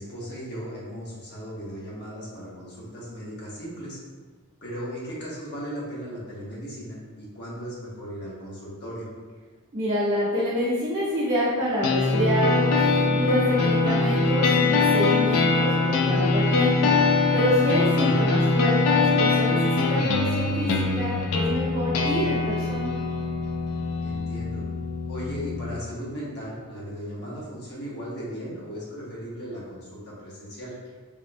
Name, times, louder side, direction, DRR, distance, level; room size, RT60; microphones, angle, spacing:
voice 1, 0.0-4.0 4.6-9.1 18.0-18.1 24.0-24.6 25.1-30.8, equal, 50° left, -6 dB, 0.8 m, -37 dB
voice 2, 9.7-16.9 17.3-22.9, equal, 30° right, -12 dB, 0.6 m, -27 dB
sound 1, 11.8-25.8, left 3 dB, 85° left, 0.3 m, -23 dB
3.4 x 2.0 x 2.5 m, 1.4 s
head